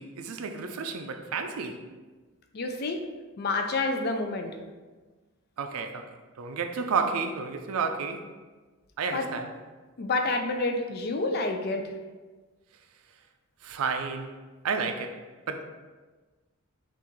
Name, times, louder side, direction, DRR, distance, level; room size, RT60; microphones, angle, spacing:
voice 1, 0.0-1.8 5.6-6.1 6.4-8.3 9.0-9.5 13.6-14.3 14.6-15.2 15.5-15.6, right 5 dB, 75° right, 0.4 m, -31 dB
voice 2, 2.5-3.0 3.4-4.5 9.1-9.4 10.0-11.9, left 3 dB, 45° left, 0.4 m, -29 dB
5.6 x 2.5 x 3.1 m
head